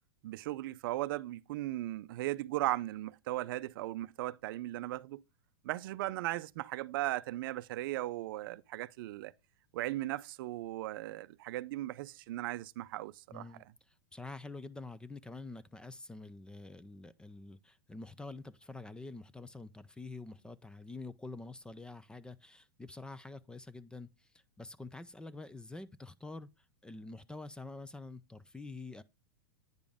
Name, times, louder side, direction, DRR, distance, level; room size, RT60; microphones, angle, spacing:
voice 1, 0.2-5.2 5.6-9.3 9.7-13.4, right 16 dB, 60° right, 0.5 m, -37 dB
voice 2, 13.3-29.0, left 3 dB, 5° left, 0.4 m, -47 dB
9.4 x 5.0 x 3.5 m
hypercardioid pair, 115°, 13 cm